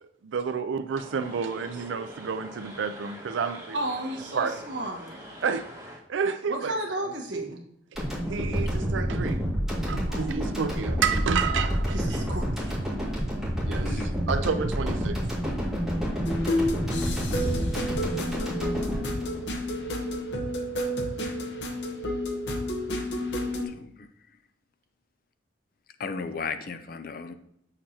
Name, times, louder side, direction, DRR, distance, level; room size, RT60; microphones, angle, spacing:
voice 1, 0.0-3.8 4.3-4.6 5.4-6.7 7.0-7.5 7.9-8.0 8.3-12.3 13.6-15.2, right 6 dB, 85° right, 9 dB, 0.4 m, -30 dB
sound 1, 0.9-6.0, equal, 20° right, 2.2 m, -44 dB
voice 2, 3.7-5.1 6.5-7.6 10.1-10.5 11.9-12.9, right 1 dB, 70° right, 1 dB, 1.4 m, -34 dB
sound 2, 8.0-20.2, equal, ahead, 2.0 m, -29 dB
voice 3, 13.8-14.2 23.6-24.1 26.0-27.3, left 4 dB, 50° left, 9 dB, 0.5 m, -35 dB
sound 3, 16.3-23.7, left 1 dB, 70° left, 1.1 m, -30 dB
7.5 x 6.6 x 2.8 m, 0.75 s
head